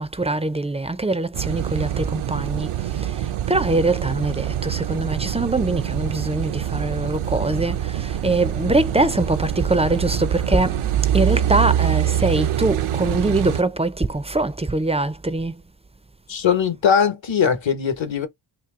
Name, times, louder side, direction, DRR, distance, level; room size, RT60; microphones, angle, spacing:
voice 1, 0.0-2.7 3.0-10.8 11.1-15.6, right 2 dB, 15° right, 0.3 m, -23 dB
Car passing by / Idling / Accelerating revving vroom, 1.3-13.6, right 11 dB, 85° right, 0.6 m, -25 dB
voice 2, 16.3-18.3, left 7 dB, 65° left, 1.0 m, -20 dB
2.9 x 2.6 x 3.5 m
wide cardioid pair, 85°, 48 cm